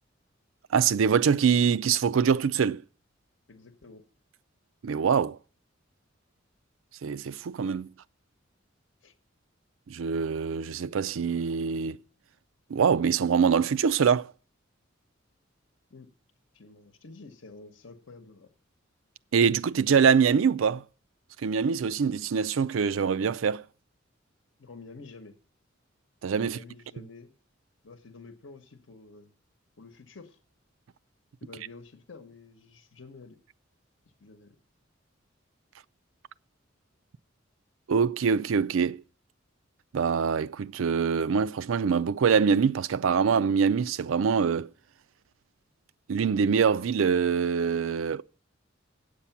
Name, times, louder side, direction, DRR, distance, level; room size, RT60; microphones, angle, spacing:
voice 1, 0.7-2.8 4.8-5.4 7.0-7.9 9.9-12.0 12.7-14.3 19.3-20.8 21.4-23.6 26.2-26.6 37.9-39.0 39.9-44.7 46.1-48.2, right 6 dB, 80° right, 0.4 m, -24 dB
voice 2, 3.5-4.0 9.0-9.1 15.9-16.1 16.5-18.5 24.6-25.4 26.4-27.3 27.8-29.3 29.8-30.4 31.4-33.4 34.2-34.6, left 3 dB, 70° left, 1.0 m, -49 dB
8.4 x 8.2 x 5.8 m
head